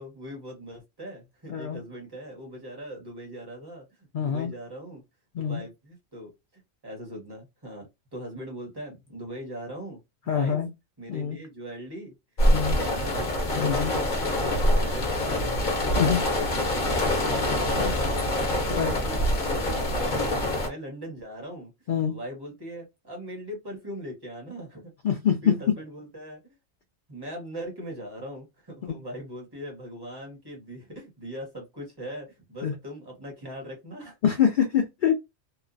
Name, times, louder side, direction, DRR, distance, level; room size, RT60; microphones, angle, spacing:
voice 1, 0.0-3.8 4.1-5.0 5.4-10.0 10.2-10.6 11.0-12.1 12.7-13.2 13.5-18.4 18.7-24.9 25.4-26.5 27.1-34.2, equal, 20° right, 1.1 m, -40 dB
voice 2, 4.1-4.5 5.3-5.6 10.3-10.7 11.1-11.4 12.5-12.8 13.6-13.9 16.0-16.2 17.7-18.0 18.7-18.9 21.9-22.2 25.0-25.5 28.9-29.0 32.6-32.7 34.2-35.2, left 8 dB, 85° left, 0.4 m, -25 dB
sound 1, 12.4-20.7, left 1 dB, 40° left, 0.9 m, -25 dB
3.0 x 2.0 x 2.5 m
omnidirectional pair, 1.4 m